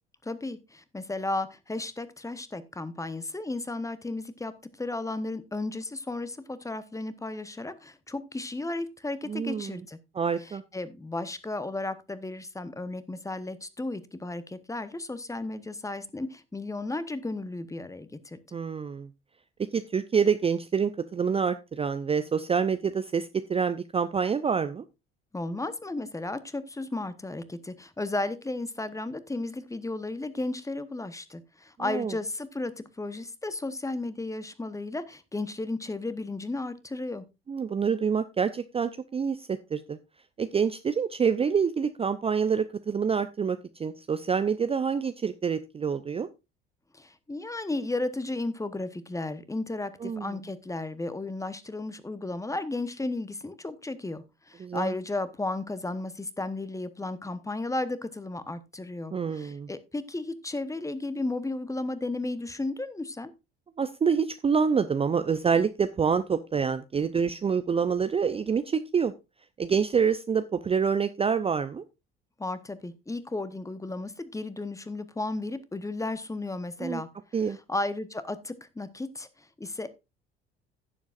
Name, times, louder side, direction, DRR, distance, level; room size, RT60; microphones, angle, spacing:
voice 1, 0.2-4.5 4.8-10.0 10.4-18.6 25.3-32.7 33.0-37.3 46.9-63.3 72.4-77.1 77.5-79.9, left 2 dB, 10° left, 14 dB, 1.0 m, -34 dB
voice 2, 9.3-9.8 10.1-10.6 18.5-19.1 19.7-24.8 31.8-32.1 37.5-40.0 40.4-46.3 50.0-50.4 54.6-54.9 59.1-59.7 63.8-69.1 69.6-71.8 76.8-77.0 77.3-77.6, right 6 dB, 20° right, 11 dB, 0.6 m, -27 dB
16.0 x 7.2 x 2.5 m, 0.25 s
figure-of-eight pair, 55°, 30 cm